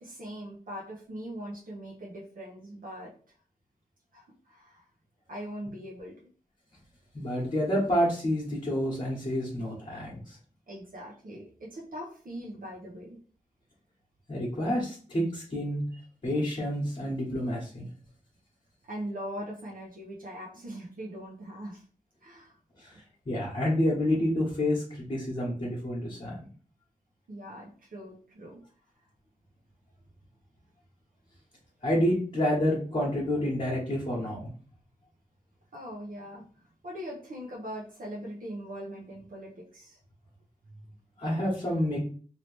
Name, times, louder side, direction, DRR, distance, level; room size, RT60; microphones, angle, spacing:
voice 1, 0.0-3.1 4.1-4.9 5.3-6.2 10.7-13.2 18.9-21.8 22.2-22.6 27.3-28.6 35.7-40.0, equal, 65° right, -3 dB, 0.8 m, -41 dB
voice 2, 7.1-10.4 14.3-17.8 22.8-26.3 31.8-34.4 41.2-42.0, equal, 40° left, -5 dB, 1.1 m, -29 dB
3.0 x 2.8 x 3.2 m, 0.43 s
wide cardioid pair, 100°, 15 cm